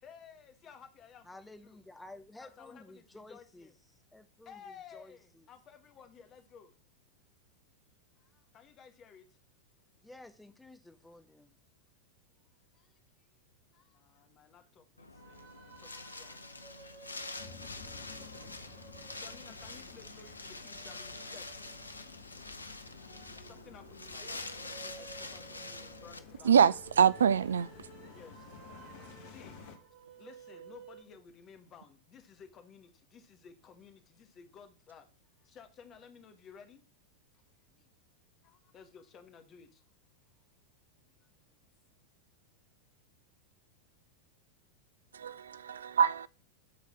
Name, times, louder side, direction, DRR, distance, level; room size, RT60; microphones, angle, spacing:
voice 1, 0.0-1.8 2.4-3.7 4.4-6.7 8.2-9.4 12.5-13.3 13.7-16.4 18.2-21.9 23.4-26.7 28.1-28.5 29.2-29.6 30.1-36.8 37.3-37.4 37.7-37.9 38.4-39.8 41.2-41.3, left 6 dB, 30° left, 1.4 m, -56 dB
voice 2, 1.2-3.7 4.1-5.5 10.0-11.5, left 2 dB, 5° left, 0.9 m, -53 dB
Wind, 15.0-26.2, left 3 dB, 80° left, 0.6 m, -46 dB
sound 1, 15.1-31.0, right 6 dB, 40° right, 2.0 m, -55 dB
sound 2, 17.4-29.8, left 5 dB, 55° left, 1.5 m, -53 dB
voice 3, 26.4-27.7 45.1-46.3, right 7 dB, 70° right, 0.3 m, -25 dB
9.5 x 4.0 x 6.0 m
figure-of-eight pair, 90°, 0 cm